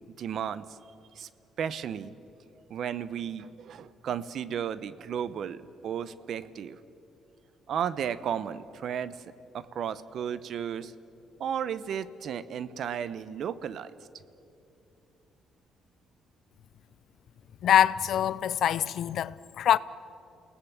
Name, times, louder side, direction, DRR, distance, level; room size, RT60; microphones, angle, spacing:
voice 1, 0.2-0.7 1.2-1.3 1.6-2.1 2.7-6.8 7.7-9.2 9.5-10.9 11.4-13.9, right 8 dB, 65° right, 0.9 m, -34 dB
voice 2, 17.6-19.8, left 10 dB, 70° left, 0.6 m, -24 dB
29.0 x 18.5 x 7.4 m
cardioid pair, 80°, 0 cm